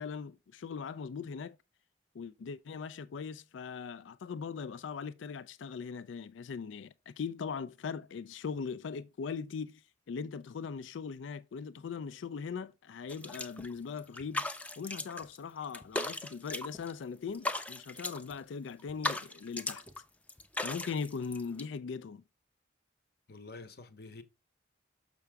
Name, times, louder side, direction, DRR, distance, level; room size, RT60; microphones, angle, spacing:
voice 1, 0.0-1.6 2.1-14.5 14.8-19.8 20.6-22.2, left 5 dB, 85° left, 0.4 m, -40 dB
sound 1, 13.1-13.7 14.0-15.4 15.6-17.0 17.3-18.3 18.8-20.0 20.3-21.6, left 2 dB, 10° left, 0.4 m, -38 dB
voice 2, 23.3-24.2, left 3 dB, 55° left, 0.9 m, -48 dB
6.9 x 5.8 x 3.4 m
head